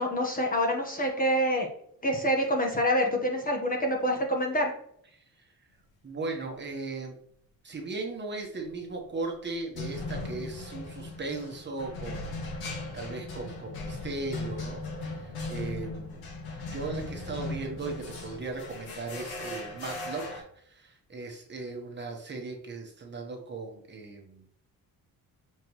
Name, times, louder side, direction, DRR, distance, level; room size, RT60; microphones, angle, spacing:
voice 1, 0.0-1.7 2.0-4.7, equal, 25° left, 1 dB, 1.3 m, -26 dB
voice 2, 6.0-7.1 7.6-16.2 16.6-24.5, right 3 dB, 30° right, 1 dB, 1.2 m, -37 dB
sound 1, 8.6-9.0 9.8-20.4, left 2 dB, 85° left, 1.8 m, -38 dB
7.1 x 4.4 x 3.1 m, 0.67 s
cardioid pair, 130°, 36 cm